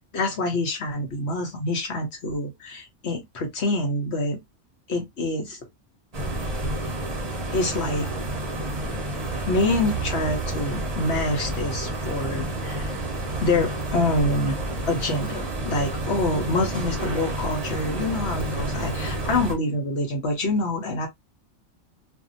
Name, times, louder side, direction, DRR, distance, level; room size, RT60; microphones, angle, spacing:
voice 1, 0.1-4.4 4.9-5.6 7.5-8.1 9.5-12.9 13.4-14.6 14.9-21.1, left 2 dB, 55° left, 1.2 m, -26 dB
sound 1, 6.1-19.5, right 2 dB, 30° right, 0.9 m, -29 dB
2.7 x 2.6 x 2.5 m
omnidirectional pair, 1.4 m